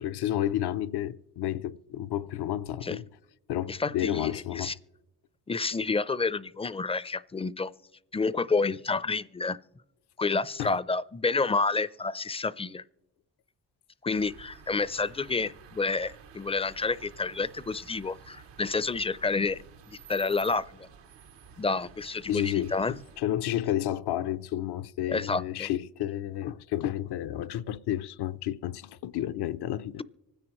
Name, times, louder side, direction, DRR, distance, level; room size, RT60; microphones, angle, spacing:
voice 1, 0.0-3.0 3.5-4.8 10.6-10.8 22.3-30.0, left 12 dB, 70° left, 0.6 m, -31 dB
voice 2, 3.7-4.7 5.5-7.7 8.1-9.6 10.2-12.8 14.0-19.6 19.9-20.9 21.6-22.9 25.1-25.7, left 4 dB, 15° left, 0.4 m, -29 dB
sound 1, 14.1-23.2, right 7 dB, 85° right, 1.0 m, -51 dB
25.0 x 9.9 x 3.0 m
supercardioid pair, 55°, 41 cm